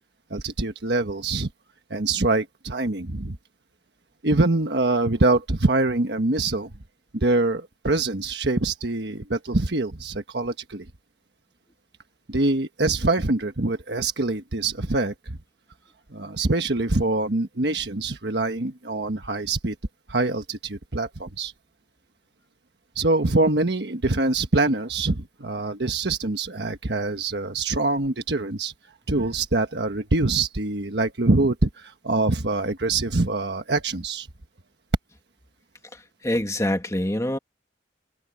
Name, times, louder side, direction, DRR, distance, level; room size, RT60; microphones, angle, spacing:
voice 1, 0.3-1.5 1.9-3.4 4.2-6.7 7.1-10.9 12.3-15.4 16.1-19.7 20.1-21.5 22.9-28.7 29.1-34.3, right 2 dB, 75° right, 1.3 m, -24 dB
voice 2, 35.9-37.4, left 1 dB, 20° left, 2.1 m, -26 dB
head